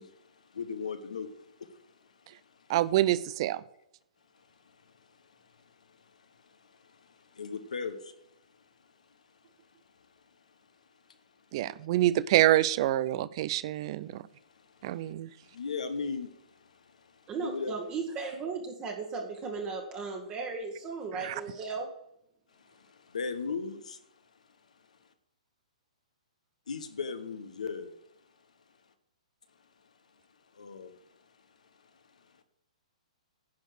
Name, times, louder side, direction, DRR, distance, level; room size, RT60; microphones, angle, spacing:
voice 1, 0.0-2.7 4.3-10.6 11.1-11.2 11.8-11.9 14.4-15.1 15.4-17.7 22.5-24.0 24.7-25.1 26.7-27.9 30.5-32.4, left 5 dB, 75° left, 1.0 m, -41 dB
voice 2, 2.7-3.6 11.5-14.2 14.8-15.3 21.2-21.4, right 14 dB, 45° right, 0.5 m, -26 dB
voice 3, 17.3-21.9, right 4 dB, 25° right, 1.4 m, -36 dB
10.5 x 4.5 x 6.6 m
hypercardioid pair, 125°, 4 cm